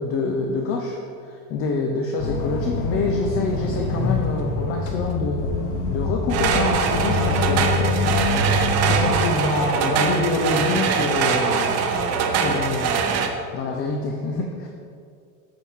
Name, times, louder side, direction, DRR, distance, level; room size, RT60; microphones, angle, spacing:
voice 1, 0.0-5.6 5.8-11.9 12.4-13.2 13.5-14.7, left 3 dB, 35° left, 2 dB, 0.5 m, -26 dB
sound 1, 2.2-9.2, left 3 dB, 70° left, 1.1 m, -25 dB
sound 2, 6.3-13.3, right 6 dB, 40° right, 0.7 m, -22 dB
8.4 x 6.1 x 3.5 m, 2.3 s
cardioid pair, 155°, 41 cm